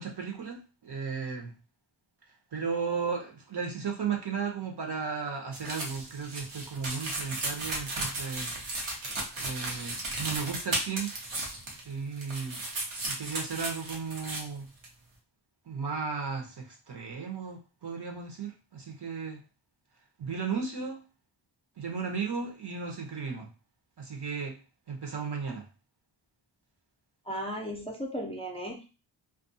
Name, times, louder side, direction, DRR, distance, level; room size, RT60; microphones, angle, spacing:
voice 1, 0.0-1.5 2.5-8.6 9.4-11.1 11.8-12.6 13.0-14.7 15.7-19.4 20.2-21.0 21.8-23.5 24.0-24.6 24.9-25.7, right 5 dB, 55° right, 1 dB, 0.8 m, -35 dB
sound 1, 5.5-11.9 12.2-14.4 14.8-14.9, right 2 dB, 85° right, 0.9 m, -35 dB
voice 2, 27.3-28.8, equal, 10° left, 0 dB, 0.6 m, -35 dB
2.4 x 2.3 x 2.6 m, 0.32 s
cardioid pair, 55°, 48 cm